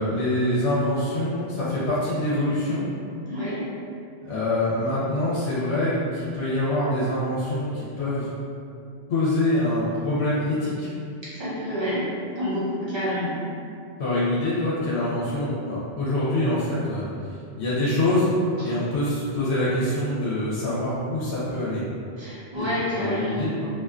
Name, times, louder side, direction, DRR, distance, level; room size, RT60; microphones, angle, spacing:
voice 1, 0.0-2.9 4.3-8.3 9.1-10.9 14.0-17.1 17.6-18.3 18.6-21.8 22.6-23.7, left 1 dB, 75° left, -9 dB, 0.8 m, -25 dB
voice 2, 3.3-3.6 11.2-13.4 18.6-18.7 22.2-23.5, equal, 30° right, -10 dB, 0.7 m, -28 dB
2.4 x 2.2 x 2.4 m, 2.5 s
omnidirectional pair, 1.1 m